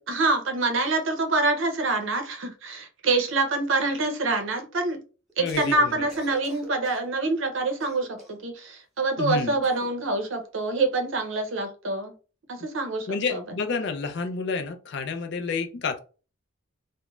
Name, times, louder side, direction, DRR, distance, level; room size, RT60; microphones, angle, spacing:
voice 1, 0.1-5.0 5.4-12.1 12.5-13.4, right 3 dB, 70° right, 0.6 m, -26 dB
Cough, 5.3-5.8 6.1-7.1 7.8-8.5 9.6-10.0, left 1 dB, ahead, 0.7 m, -44 dB
voice 2, 5.4-6.1 9.2-9.6 13.1-16.0, left 4 dB, 55° left, 0.4 m, -29 dB
2.3 x 2.1 x 3.0 m
head